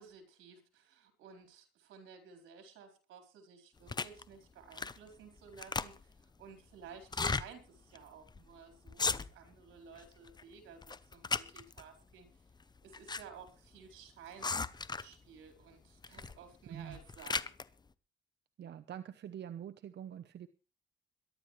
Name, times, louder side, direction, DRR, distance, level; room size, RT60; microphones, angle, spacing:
voice 1, 0.0-12.3 12.8-14.6 14.9-17.5, right 6 dB, 85° right, 5 dB, 4.3 m, -55 dB
sound 1, 3.9-4.2 4.7-5.1 5.4-6.2 7.0-7.5 7.9-8.0 8.3-8.5 8.9-9.5 10.0-10.4 10.8-11.8 12.6-13.2 13.5-13.6 14.4-15.2 16.0-16.4 16.8-17.6, left 4 dB, 20° left, 0.7 m, -36 dB
voice 2, 16.6-17.0 18.6-20.5, right 9 dB, 60° right, 9 dB, 0.9 m, -45 dB
22.0 x 12.0 x 3.2 m, 0.35 s
cardioid pair, 90°, 20 cm